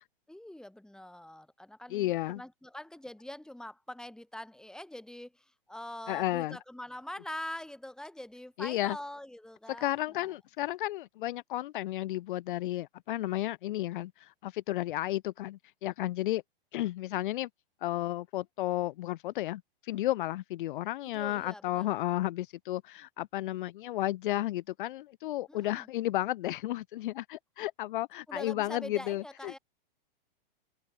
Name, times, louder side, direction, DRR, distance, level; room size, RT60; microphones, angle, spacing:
voice 1, 0.3-10.3 21.0-21.9 25.5-25.9 28.3-29.6, left 1 dB, ahead, 5.0 m, -44 dB
voice 2, 1.9-2.4 6.1-6.6 8.6-9.0 9.8-16.4 16.7-17.5 17.8-29.6, left 15 dB, 60° left, 1.2 m, -33 dB
open air
hypercardioid pair, 120°, 29 cm